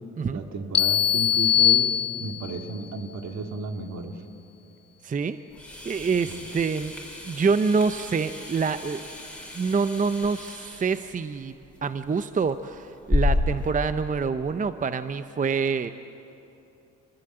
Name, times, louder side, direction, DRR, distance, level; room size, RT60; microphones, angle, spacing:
voice 1, 0.3-4.1 6.3-6.5, right 3 dB, 65° right, 4 dB, 2.2 m, -33 dB
sound 1, 0.7-2.6, left 10 dB, 35° left, 0.8 m, -21 dB
voice 2, 5.0-5.4 5.8-6.9 7.2-9.0 9.5-11.5 11.8-15.9, right 5 dB, 25° right, 11 dB, 0.6 m, -26 dB
sound 2, 5.5-13.7, left 2 dB, 5° left, 4.7 m, -32 dB
25.0 x 19.5 x 7.9 m, 2.8 s
cardioid pair, 90°, 30 cm